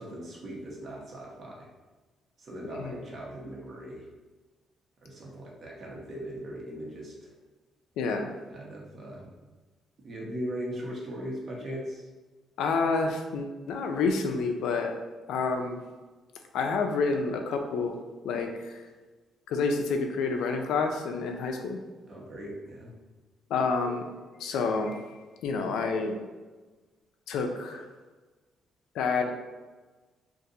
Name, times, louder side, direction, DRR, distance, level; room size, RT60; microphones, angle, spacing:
voice 1, 0.0-1.7 2.4-4.1 5.0-7.3 8.5-9.3 10.0-12.1 22.1-22.9, equal, 50° right, -3 dB, 1.0 m, -39 dB
voice 2, 2.7-3.0 8.0-8.3 12.6-14.9 15.3-15.8 16.5-18.0 18.2-18.8 19.5-21.8 23.5-26.2 27.3-27.9 28.9-29.3, left 4 dB, 85° left, 4 dB, 0.4 m, -29 dB
2.6 x 2.5 x 4.0 m, 1.3 s
cardioid pair, 90°, 0 cm